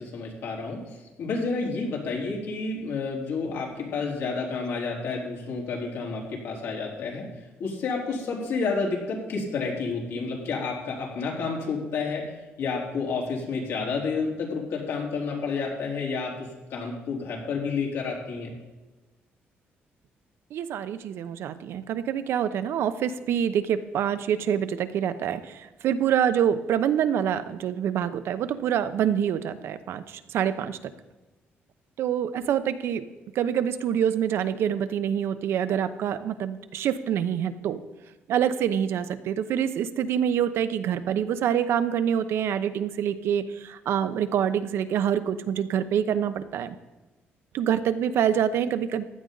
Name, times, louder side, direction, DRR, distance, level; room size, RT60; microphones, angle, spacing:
voice 1, 0.0-7.3 7.6-18.5, left 4 dB, 80° left, -2 dB, 4.0 m, -30 dB
voice 2, 20.5-30.8 32.0-33.0 33.3-37.8 38.3-46.8 47.5-49.0, right 9 dB, 75° right, 11 dB, 0.8 m, -26 dB
16.0 x 11.0 x 4.0 m, 1.1 s
cardioid pair, 135°, 4 cm